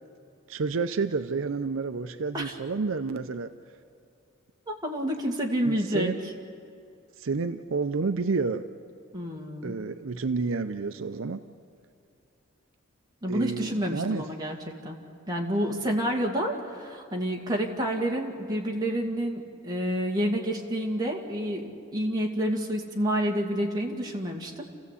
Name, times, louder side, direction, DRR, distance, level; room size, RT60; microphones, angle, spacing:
voice 1, 0.5-3.5 5.7-6.2 7.2-8.6 9.6-11.4 13.3-14.3, right 4 dB, 70° right, 10 dB, 0.6 m, -29 dB
voice 2, 4.7-6.1 9.1-9.7 13.2-14.6 14.8-15.0 15.3-24.7, equal, 20° right, 0 dB, 2.1 m, -29 dB
28.5 x 15.0 x 8.4 m, 2.4 s
head